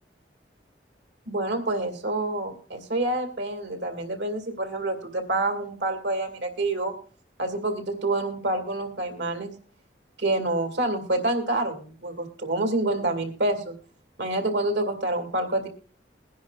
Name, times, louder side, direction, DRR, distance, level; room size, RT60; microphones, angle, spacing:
voice 1, 1.3-6.9 7.4-9.5 10.2-13.8 14.2-15.7, right 2 dB, 80° right, 5 dB, 2.3 m, -27 dB
22.0 x 10.0 x 2.4 m, 0.42 s
head